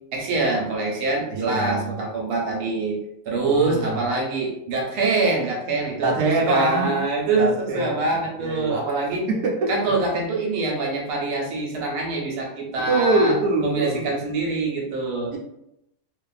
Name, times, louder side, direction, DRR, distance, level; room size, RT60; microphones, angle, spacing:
voice 1, 0.1-3.0 3.3-9.3 9.7-13.3 13.6-15.3, right 3 dB, 85° right, -1 dB, 1.2 m, -24 dB
voice 2, 1.5-1.9 3.5-4.0 6.0-7.0 7.3-8.0 8.4-8.8 9.3-9.7 12.9-14.0, right 3 dB, 65° right, -2 dB, 1.0 m, -23 dB
2.5 x 2.4 x 2.3 m, 0.82 s
omnidirectional pair, 1.6 m